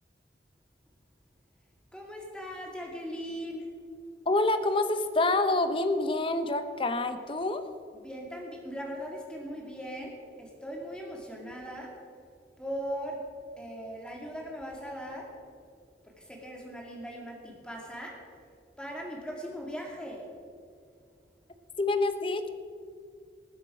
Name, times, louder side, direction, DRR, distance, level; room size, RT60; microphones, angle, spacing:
voice 1, 1.9-3.7 7.9-11.9 12.6-13.2 13.6-15.3 16.0-18.2 18.8-20.3, equal, 5° left, -1 dB, 2.2 m, -39 dB
voice 2, 4.3-7.6 21.8-22.5, left 2 dB, 30° left, 10 dB, 0.7 m, -27 dB
20.0 x 8.0 x 4.9 m, 2.2 s
head